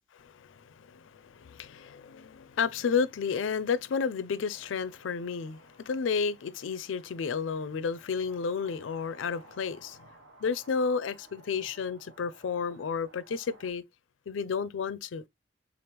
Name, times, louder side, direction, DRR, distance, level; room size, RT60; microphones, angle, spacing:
voice 1, 0.2-10.0 10.4-13.8 14.3-15.2, left 5 dB, 85° left, 0.4 m, -32 dB
sound 1, 4.4-13.7, right 2 dB, 70° right, 1.1 m, -58 dB
3.8 x 3.4 x 2.9 m
head